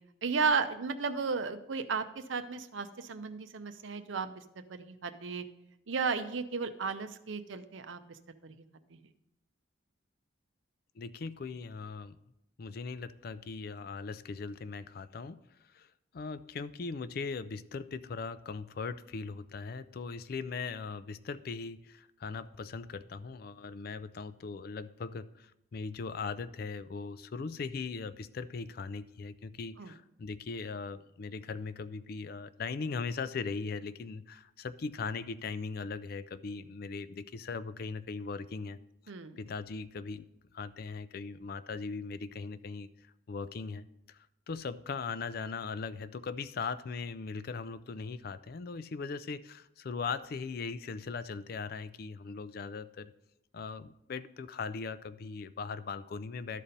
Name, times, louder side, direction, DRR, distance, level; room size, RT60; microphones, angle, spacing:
voice 1, 0.2-4.4 4.7-5.4 5.9-8.0 8.4-8.5 29.8-29.9 39.1-39.4, right 5 dB, 80° right, 10 dB, 0.7 m, -34 dB
voice 2, 11.0-12.2 12.6-15.4 15.7-38.8 39.4-40.3 40.5-42.9 43.3-53.1 53.5-56.6, left 4 dB, 50° left, 14 dB, 0.4 m, -39 dB
12.5 x 4.2 x 5.2 m, 0.84 s
head